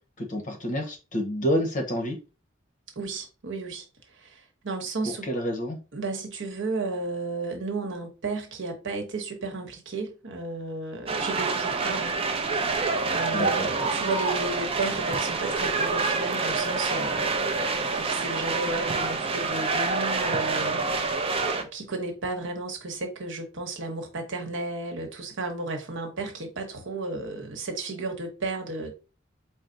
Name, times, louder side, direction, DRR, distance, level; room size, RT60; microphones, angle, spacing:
voice 1, 0.2-2.2 5.0-5.8 13.3-13.7, equal, 40° left, 0.9 m, -28 dB
voice 2, 3.0-3.8 4.2-5.3 5.9-12.2 13.0-20.8 21.6-28.9, right 3 dB, 70° right, 1.0 m, -33 dB
sound 1, 11.1-21.6, right 4 dB, 30° right, 0.5 m, -27 dB
4.3 x 2.0 x 3.8 m
head